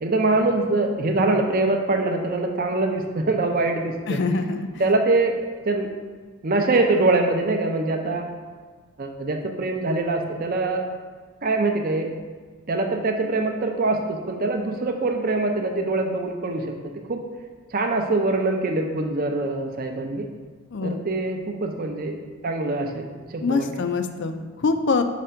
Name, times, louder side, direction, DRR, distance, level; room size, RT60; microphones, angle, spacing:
voice 1, 0.0-4.2 4.8-5.4 5.7-5.9 6.4-8.3 9.0-10.8 11.4-12.1 12.7-16.7 17.1-17.2 17.7-20.3 20.8-22.2 22.4-23.9, right 2 dB, 40° right, 4 dB, 0.5 m, -23 dB
voice 2, 4.1-4.7 20.7-21.0 23.4-25.0, left 4 dB, 50° left, 8 dB, 0.4 m, -24 dB
5.0 x 3.3 x 5.6 m, 1.5 s
head